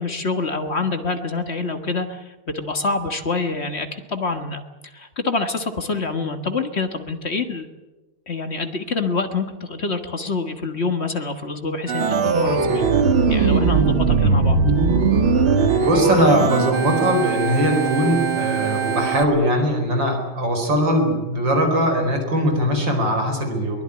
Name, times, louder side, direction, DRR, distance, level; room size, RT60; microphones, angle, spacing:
voice 1, 0.0-4.6 4.9-7.7 8.3-12.8 13.3-14.6, left 3 dB, 35° left, 7 dB, 1.7 m, -26 dB
Organ, 11.9-19.2, right 5 dB, 90° right, 2.7 m, -19 dB
voice 2, 15.8-23.8, equal, 65° right, 4 dB, 5.2 m, -20 dB
22.5 x 21.0 x 9.8 m, 1.1 s
omnidirectional pair, 2.2 m